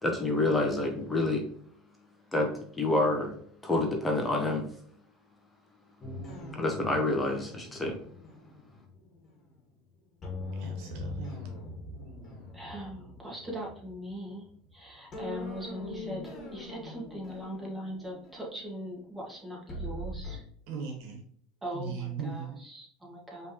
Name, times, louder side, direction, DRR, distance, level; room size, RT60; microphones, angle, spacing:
voice 1, 0.0-1.4 2.3-2.5 2.8-3.4 3.6-4.7 6.5-8.0, left 2 dB, 15° left, 2 dB, 1.0 m, -27 dB
sound 1, 6.0-9.8 10.2-14.7 15.1-20.4, left 2 dB, 30° left, 1.7 m, -42 dB
voice 2, 10.5-11.4 20.7-21.2 21.7-22.7, right 6 dB, 70° right, 3 dB, 1.5 m, -38 dB
voice 3, 12.5-14.5 14.7-20.4 21.6-23.5, equal, 10° right, -3 dB, 1.9 m, -40 dB
5.2 x 3.3 x 3.0 m, 0.62 s
supercardioid pair, 115°, 0 cm